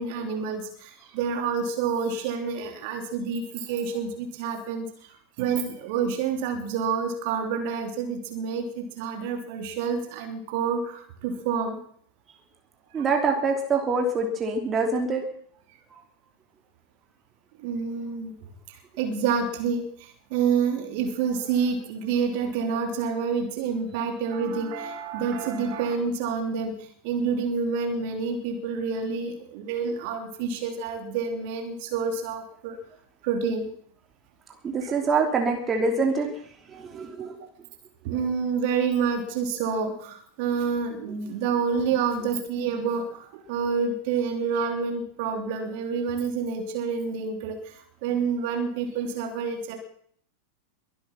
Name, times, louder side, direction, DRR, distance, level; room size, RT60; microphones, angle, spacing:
voice 1, 0.0-11.8 12.9-13.1 17.6-18.3 18.7-26.8 27.0-32.8 33.2-33.7 34.7-34.9 38.0-49.8, right 5 dB, 45° right, 4 dB, 3.1 m, -28 dB
voice 2, 12.9-15.3 34.6-36.3 36.7-37.4, right 4 dB, 20° right, 2 dB, 3.0 m, -25 dB
22.5 x 8.8 x 6.0 m, 0.62 s
figure-of-eight pair, 90°, 0 cm